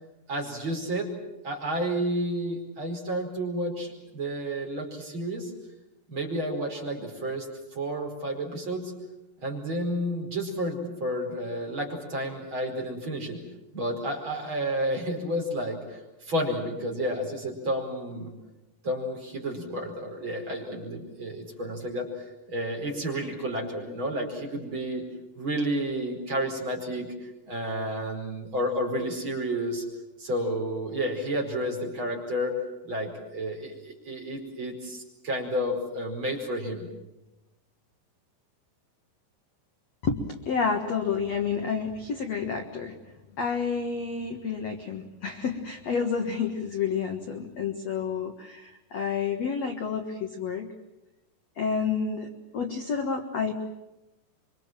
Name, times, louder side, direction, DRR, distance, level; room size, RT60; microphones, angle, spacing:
voice 1, 0.3-1.1 1.4-5.5 6.1-7.5 7.8-8.9 9.4-13.4 13.7-18.3 18.8-22.1 22.5-25.0 25.4-27.1 27.5-29.9 30.2-32.5 32.8-36.9, equal, 30° right, 0 dB, 5.3 m, -31 dB
voice 2, 40.0-42.9 43.4-50.7 51.6-53.5, left 6 dB, 55° left, 4 dB, 2.1 m, -29 dB
26.5 x 24.5 x 7.5 m, 0.99 s
omnidirectional pair, 4.8 m